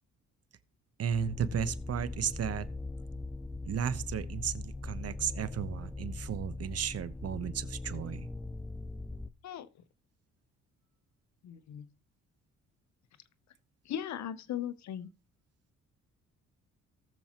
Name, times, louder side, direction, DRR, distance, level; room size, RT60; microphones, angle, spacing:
voice 1, 1.0-2.7 3.6-8.3, right 8 dB, 55° right, 1.0 m, -34 dB
Cruising on Mars, 1.1-9.3, left 2 dB, 5° left, 0.4 m, -40 dB
voice 2, 11.4-11.9 13.8-15.1, left 10 dB, 65° left, 0.8 m, -38 dB
18.5 x 7.1 x 3.0 m
cardioid pair, 90°, 30 cm